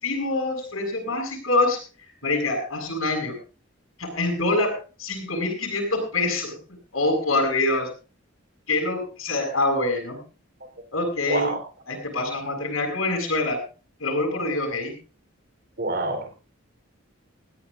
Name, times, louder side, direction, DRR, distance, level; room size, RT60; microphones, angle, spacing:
voice 1, 0.0-3.3 4.0-6.6 6.9-7.9 8.7-10.2 10.9-11.5 11.9-13.6 14.0-14.9, left 2 dB, 85° left, 0 dB, 7.3 m, -25 dB
voice 2, 15.8-16.3, right 2 dB, 50° right, 7 dB, 4.1 m, -26 dB
20.5 x 16.5 x 2.6 m, 0.34 s
head